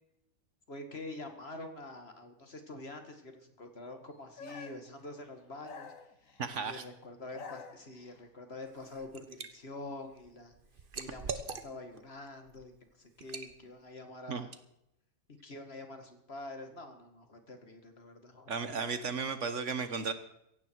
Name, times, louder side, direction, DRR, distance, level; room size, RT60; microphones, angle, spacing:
voice 1, 0.7-5.9 6.3-10.5 11.0-12.7 13.0-14.5 15.3-18.5, left 2 dB, 45° left, 6 dB, 2.1 m, -46 dB
sound 1, 4.4-4.9 5.6-6.6 7.1-8.2, left 5 dB, 70° left, 1.7 m, -48 dB
voice 2, 6.4-6.8 14.3-14.5 18.5-20.1, right 5 dB, 60° right, 10 dB, 1.4 m, -34 dB
Liquid, 8.7-9.5 9.9-12.0 12.5-12.7 13.2-13.5, right 5 dB, 40° right, 1.2 m, -42 dB
16.0 x 16.0 x 4.6 m, 0.78 s
omnidirectional pair, 1.5 m